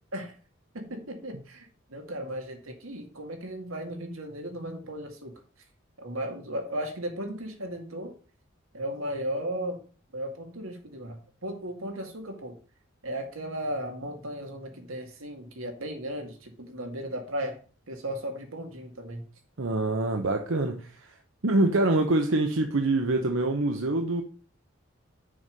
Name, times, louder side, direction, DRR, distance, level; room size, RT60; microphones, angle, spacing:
voice 1, 0.7-5.4 6.0-8.1 8.7-9.8 10.1-12.6 13.0-17.6 17.9-19.2, right 1 dB, 90° right, 2.1 m, -36 dB
voice 2, 19.6-21.1 21.4-24.2, right 2 dB, 70° right, 0.9 m, -25 dB
6.9 x 5.4 x 6.6 m
head